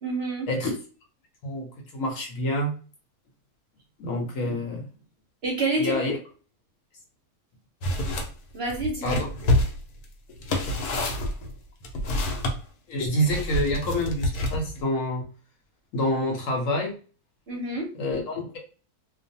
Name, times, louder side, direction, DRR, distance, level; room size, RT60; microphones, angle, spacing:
voice 1, 0.0-0.5 5.4-6.0 8.5-9.2 17.5-17.9, right 2 dB, 50° right, -2 dB, 0.8 m, -28 dB
voice 2, 1.4-2.7 4.0-4.9 5.8-6.2 9.0-9.3 12.9-15.3 15.9-17.0 17.9-18.6, left 1 dB, 65° left, 1 dB, 1.0 m, -27 dB
sound 1, 7.8-8.3 8.7-12.6 13.3-14.8, left 1 dB, 90° left, 1.2 m, -27 dB
2.5 x 2.2 x 2.7 m, 0.38 s
omnidirectional pair, 1.6 m